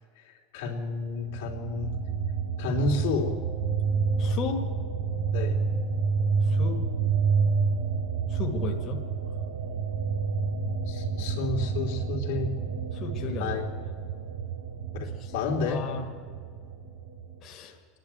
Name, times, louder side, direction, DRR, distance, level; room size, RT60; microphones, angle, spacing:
voice 1, 0.2-1.9 2.6-3.3 5.3-5.6 10.9-12.5 13.4-13.7 14.9-15.8, left 4 dB, 80° left, -1 dB, 3.2 m, -31 dB
sound 1, 1.3-17.4, right 5 dB, 75° right, 4.2 m, -29 dB
voice 2, 4.2-4.6 6.4-6.8 8.3-9.1 12.9-13.6 15.2-15.3 15.7-16.1 17.4-17.8, left 5 dB, 40° left, 2 dB, 1.7 m, -34 dB
27.0 x 11.0 x 8.9 m, 2.1 s
supercardioid pair, 145°, 0 cm